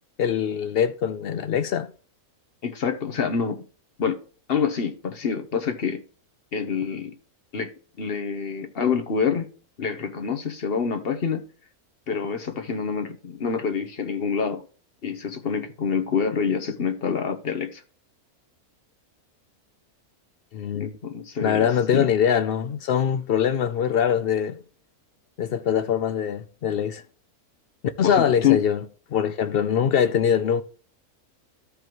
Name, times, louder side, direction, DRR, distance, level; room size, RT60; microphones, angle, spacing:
voice 1, 0.2-1.9 20.5-20.9 21.4-24.6 25.4-27.0 28.0-28.8 29.1-30.6, left 8 dB, 80° left, 0.5 m, -23 dB
voice 2, 2.6-3.6 4.0-4.2 4.5-6.0 6.5-7.1 7.5-9.4 9.8-11.4 12.1-14.6 15.0-17.8 20.7-22.1 28.0-28.6, left 6 dB, 45° left, 1.0 m, -26 dB
14.0 x 5.1 x 3.0 m
omnidirectional pair, 1.6 m